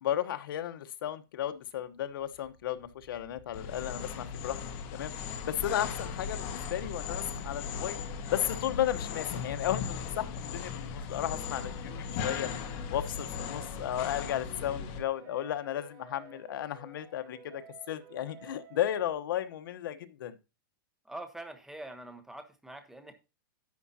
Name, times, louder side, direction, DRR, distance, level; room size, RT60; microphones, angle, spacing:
voice 1, 0.0-4.6 4.9-5.1 5.4-20.4, left 11 dB, 70° left, 11 dB, 1.0 m, -34 dB
sound 1, 1.8-11.0, right 2 dB, 70° right, 3.8 m, -52 dB
sound 2, 3.5-15.0, left 7 dB, 40° left, 1.6 m, -38 dB
sound 3, 11.1-19.1, right 5 dB, 30° right, 3.7 m, -53 dB
voice 2, 21.0-23.1, right 1 dB, 5° right, 8 dB, 1.1 m, -44 dB
10.5 x 8.4 x 2.8 m, 0.28 s
supercardioid pair, 155°, 12 cm